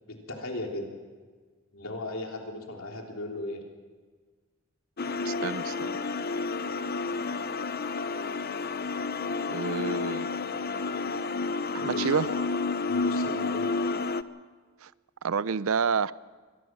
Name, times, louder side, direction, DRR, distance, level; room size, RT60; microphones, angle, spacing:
voice 1, 0.0-0.9 1.7-3.6 11.8-12.4 12.8-13.7, left 2 dB, 70° left, 3.3 m, -37 dB
sound 1, 5.0-14.2, left 3 dB, 45° left, 0.6 m, -30 dB
voice 2, 5.2-6.0 9.5-10.3 11.7-12.3 14.8-14.9 15.2-16.1, right 6 dB, 75° right, 0.5 m, -29 dB
24.0 x 18.5 x 6.2 m
head